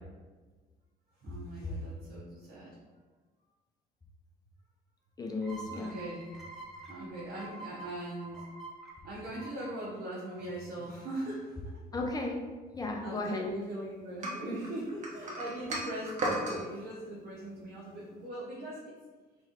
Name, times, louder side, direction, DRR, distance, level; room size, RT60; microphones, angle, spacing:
voice 1, 1.2-2.8 5.7-6.3 6.9-8.5 9.0-11.7 13.0-19.0, right 1 dB, 70° right, -8 dB, 1.2 m, -40 dB
voice 2, 5.2-6.0 11.9-12.4 12.7-13.5, left 2 dB, 20° left, 1 dB, 0.8 m, -34 dB
sound 1, 5.4-10.9, right 3 dB, ahead, 1.1 m, -48 dB
sound 2, 14.2-16.6, right 1 dB, 45° right, 1.2 m, -34 dB
3.5 x 3.3 x 4.4 m, 1.4 s
cardioid pair, 110°, 17 cm